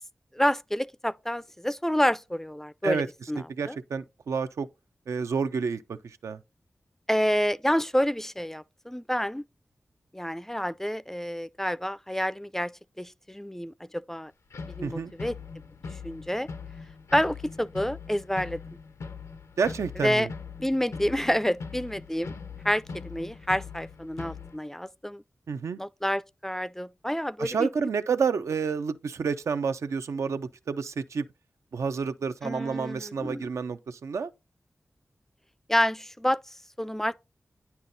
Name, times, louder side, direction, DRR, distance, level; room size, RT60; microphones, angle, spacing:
voice 1, 0.3-3.0 3.3-3.8 7.1-9.4 10.1-12.7 13.0-14.3 14.7-15.4 16.0-16.5 17.1-18.8 20.0-20.3 20.6-22.3 22.6-25.2 25.8-27.7 32.4-33.5 35.7-36.4 36.8-37.1, equal, 5° left, 0.3 m, -28 dB
voice 2, 3.4-4.7 5.1-6.4 14.8-15.1 19.6-20.3 25.5-25.8 27.4-31.3 31.7-34.3, right 5 dB, 90° right, 0.5 m, -29 dB
sound 1, 14.5-24.6, left 5 dB, 85° left, 0.6 m, -41 dB
9.5 x 5.6 x 2.6 m
cardioid pair, 50°, 5 cm